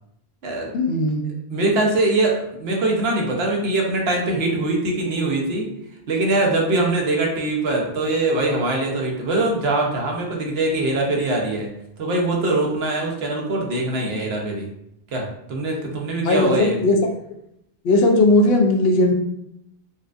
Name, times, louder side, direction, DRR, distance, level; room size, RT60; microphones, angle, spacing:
voice 1, 0.7-1.2 16.2-17.0 17.8-19.1, left 2 dB, 75° left, 2 dB, 0.8 m, -17 dB
voice 2, 1.5-5.7 6.1-11.7 12.0-14.7 15.1-16.8, right 2 dB, 80° right, 0 dB, 1.0 m, -22 dB
4.1 x 2.4 x 2.5 m, 0.77 s
omnidirectional pair, 1.0 m